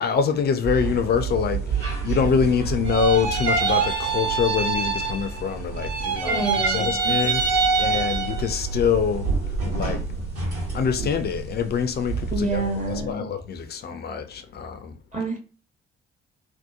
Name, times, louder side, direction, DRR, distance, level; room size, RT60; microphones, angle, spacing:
voice 1, 0.0-9.3 9.7-10.0 10.7-15.0, left 6 dB, 35° left, 0.5 m, -25 dB
sound 1, 0.6-13.0, right 4 dB, 75° right, 1.2 m, -30 dB
sound 2, 2.8-5.5 5.7-8.5, right 4 dB, 60° right, 0.7 m, -24 dB
voice 2, 6.2-7.1 12.3-13.3 15.1-15.4, right 2 dB, 25° right, 0.9 m, -28 dB
2.8 x 2.1 x 2.3 m
figure-of-eight pair, 45°, 29 cm